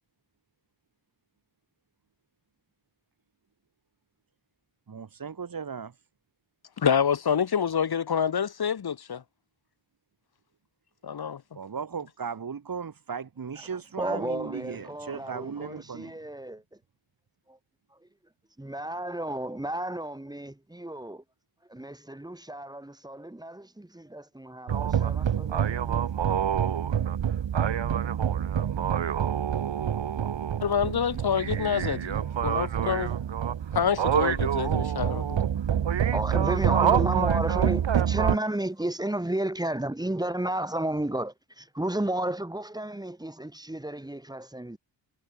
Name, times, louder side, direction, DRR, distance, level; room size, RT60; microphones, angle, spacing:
voice 1, 4.9-5.9 11.5-16.2, right 6 dB, 50° right, 7.5 m, -36 dB
voice 2, 6.8-9.2 11.0-11.4 30.6-33.1 33.7-35.4, left 7 dB, 55° left, 2.7 m, -27 dB
voice 3, 14.0-16.6 17.5-17.6 17.9-18.0 18.6-21.2 21.7-26.0 36.1-44.8, right 1 dB, 10° right, 5.4 m, -33 dB
sound 1, 24.7-38.4, right 9 dB, 75° right, 2.6 m, -26 dB
wide cardioid pair, 180°, 45 cm